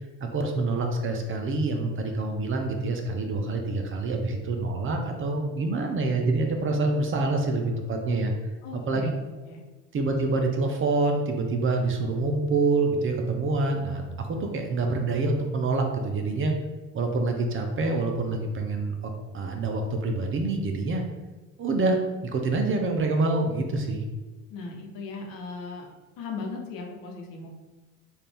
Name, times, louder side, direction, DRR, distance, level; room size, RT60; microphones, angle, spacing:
voice 1, 0.2-8.3 8.7-9.1 9.9-16.5 16.9-21.0 21.6-24.0, right 3 dB, 35° right, 3 dB, 0.7 m, -26 dB
voice 2, 8.6-9.1 9.5-9.6 24.5-25.9 26.2-27.5, left 4 dB, 65° left, 1 dB, 1.0 m, -37 dB
4.1 x 2.6 x 3.4 m, 1.2 s
supercardioid pair, 80°, 35 cm